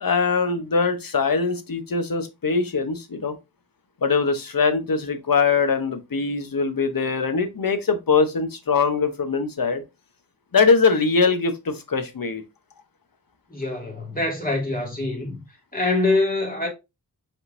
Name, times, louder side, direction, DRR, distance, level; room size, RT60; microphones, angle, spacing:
voice 1, 0.0-3.3 4.0-9.8 10.5-12.4, left 5 dB, 60° left, 0.9 m, -22 dB
voice 2, 13.5-15.4 15.7-16.7, left 2 dB, 20° left, 2.1 m, -24 dB
5.3 x 3.7 x 2.5 m
wide cardioid pair, 75°, 38 cm